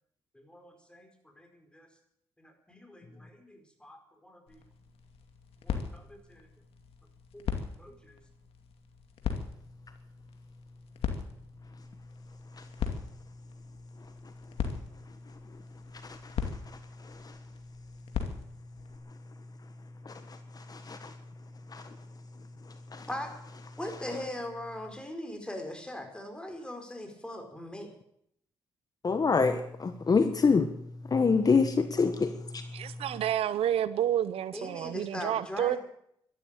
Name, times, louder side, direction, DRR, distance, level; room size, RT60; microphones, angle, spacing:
voice 1, 0.3-1.9 2.4-4.6 5.6-6.5 7.3-7.5 7.8-8.2 23.1-23.3 23.8-27.9 34.5-35.8, left 1 dB, 10° left, 4 dB, 4.9 m, -41 dB
sound 1, 4.5-19.0, left 6 dB, 75° left, 2.4 m, -40 dB
voice 2, 20.0-21.1 21.7-21.8 22.9-23.1 29.0-30.7 31.1-32.6, left 4 dB, 40° left, 9 dB, 1.4 m, -26 dB
voice 3, 32.7-35.8, right 11 dB, 75° right, 17 dB, 0.7 m, -29 dB
12.5 x 12.0 x 9.0 m, 0.73 s
supercardioid pair, 65°, 10 cm